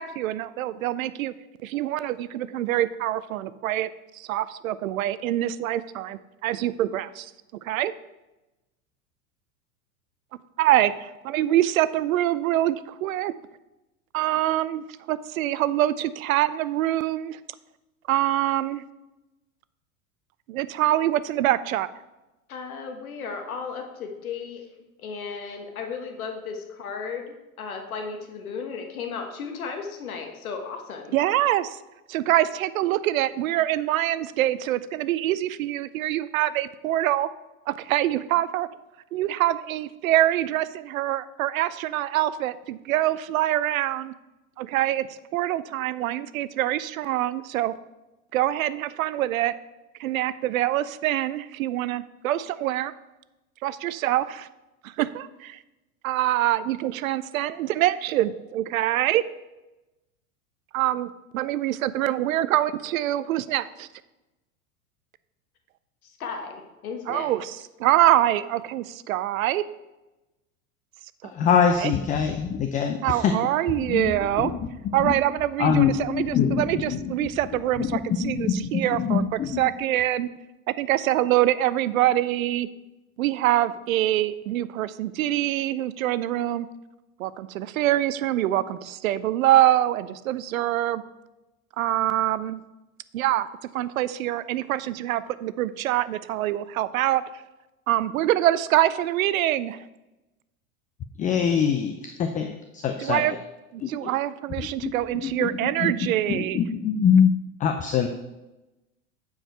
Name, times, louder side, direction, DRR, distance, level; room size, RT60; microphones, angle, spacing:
voice 1, 0.0-1.3 1.6-7.3 7.6-7.9 10.6-13.3 14.1-17.4 18.1-18.8 20.5-21.9 31.1-31.8 32.1-37.3 37.7-38.7 39.1-44.1 44.6-45.1 45.3-47.7 48.3-49.5 50.0-52.9 53.6-54.5 54.8-55.6 56.0-59.2 60.7-63.9 67.1-69.6 71.2-71.9 73.0-74.5 74.9-79.2 79.6-80.3 80.8-82.7 83.2-86.7 87.2-91.0 91.8-92.6 93.1-93.5 93.7-97.2 97.9-99.9 103.0-103.3 103.7-106.6, right 13 dB, 70° right, 16 dB, 0.5 m, -25 dB
voice 2, 22.5-24.7 25.0-31.1 66.0-67.3, left 5 dB, 80° left, 4 dB, 1.3 m, -35 dB
voice 3, 71.3-73.3 73.7-74.1 74.4-74.6 74.8-75.1 75.6-76.6 76.9-77.0 77.8-77.9 78.2-79.6 101.2-103.2 103.8-104.1 104.8-104.9 105.2-107.3 107.6-108.1, left 7 dB, 20° left, 6 dB, 0.4 m, -24 dB
8.8 x 4.8 x 4.5 m, 1.0 s
hypercardioid pair, 90°, 42 cm